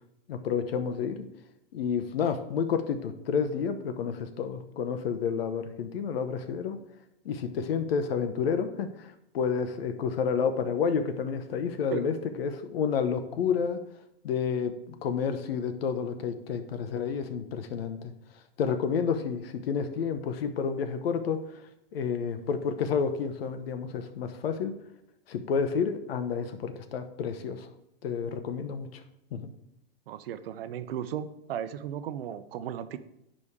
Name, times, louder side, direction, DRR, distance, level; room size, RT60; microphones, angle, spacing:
voice 1, 0.3-1.2 1.7-6.8 7.2-13.8 14.2-18.1 18.6-21.4 21.9-24.7 25.3-27.7 28.0-29.0 29.3-29.5, left 6 dB, 75° left, 9 dB, 0.9 m, -30 dB
voice 2, 30.1-33.0, right 10 dB, 70° right, 12 dB, 0.7 m, -35 dB
9.7 x 5.1 x 3.6 m, 0.83 s
supercardioid pair, 160°, 30 cm